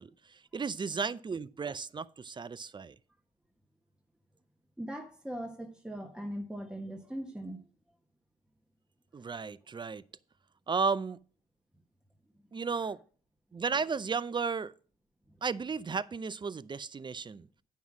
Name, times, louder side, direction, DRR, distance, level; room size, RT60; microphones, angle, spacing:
voice 1, 0.0-3.0 9.1-10.0 10.7-11.2 12.5-13.0 13.5-14.7 15.4-17.5, right 5 dB, 30° right, 0.5 m, -34 dB
voice 2, 4.8-7.6, equal, 5° right, 1.2 m, -40 dB
9.3 x 5.6 x 6.1 m
supercardioid pair, 65°, 16 cm